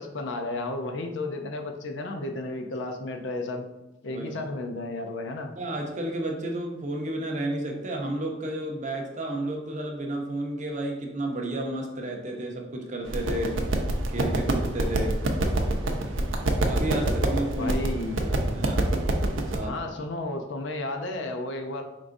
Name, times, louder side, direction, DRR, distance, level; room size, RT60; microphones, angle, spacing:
voice 1, 0.0-3.7 4.0-5.5 17.5-18.3 19.6-21.8, left 2 dB, 65° left, 4 dB, 0.5 m, -33 dB
voice 2, 5.6-13.7 14.1-15.2 16.6-17.8 18.2-18.9 19.5-19.8, right 1 dB, 40° right, 1 dB, 0.7 m, -31 dB
sound 1, 13.1-19.6, right 1 dB, 80° right, 0.6 m, -26 dB
4.7 x 3.7 x 2.6 m, 0.98 s
head